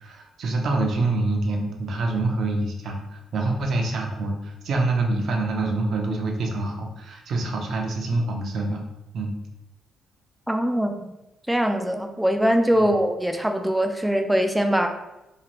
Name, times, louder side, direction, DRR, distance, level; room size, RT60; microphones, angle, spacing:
voice 1, 0.0-8.8 9.1-9.3 12.8-12.9, right 2 dB, 65° right, 2 dB, 0.5 m, -26 dB
voice 2, 10.5-11.1 11.5-14.9, equal, 5° right, 5 dB, 0.3 m, -22 dB
2.8 x 2.4 x 3.0 m, 0.96 s
cardioid pair, 90°, 0 cm